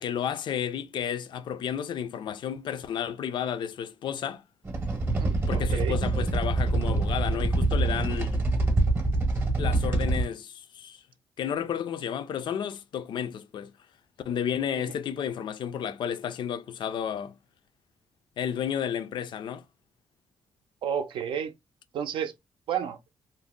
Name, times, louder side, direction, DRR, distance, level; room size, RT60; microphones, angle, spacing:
voice 1, 0.0-4.4 5.5-8.4 9.6-11.0 11.4-13.7 14.3-17.3 18.4-19.6, left 9 dB, 60° left, 0.4 m, -32 dB
sound 1, 4.6-10.3, right 2 dB, 25° right, 0.7 m, -25 dB
voice 2, 5.2-6.0 20.8-21.5 21.9-22.3 22.7-23.0, right 8 dB, 70° right, 0.4 m, -31 dB
2.7 x 2.0 x 3.5 m
cardioid pair, 110°, 9 cm